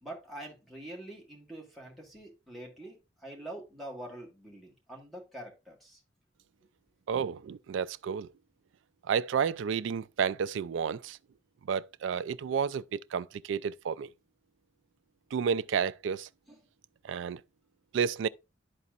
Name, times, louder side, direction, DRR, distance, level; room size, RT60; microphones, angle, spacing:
voice 1, 0.0-6.0 16.5-16.6, right 1 dB, ahead, 1.6 m, -45 dB
voice 2, 7.1-8.3 9.1-11.2 11.7-14.1 15.3-16.3 17.0-17.4 17.9-18.3, right 7 dB, 80° right, 0.3 m, -31 dB
11.5 x 4.1 x 2.4 m
head